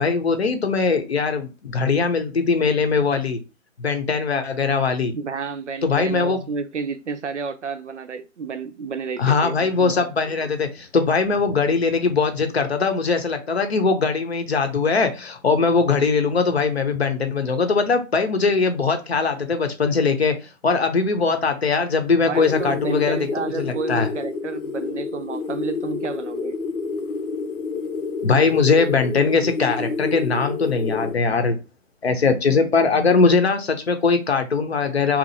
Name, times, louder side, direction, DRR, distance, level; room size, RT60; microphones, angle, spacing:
voice 1, 0.0-3.4 3.8-5.1 5.8-6.4 9.2-23.3 23.6-24.1 28.2-31.6 32.0-35.2, left 4 dB, 50° left, 0.7 m, -21 dB
voice 2, 5.1-9.6 22.2-26.6, right 5 dB, 60° right, 0.5 m, -31 dB
sound 1, 22.3-31.1, left 4 dB, 85° left, 0.9 m, -29 dB
2.8 x 2.4 x 4.0 m
hypercardioid pair, 170°, 41 cm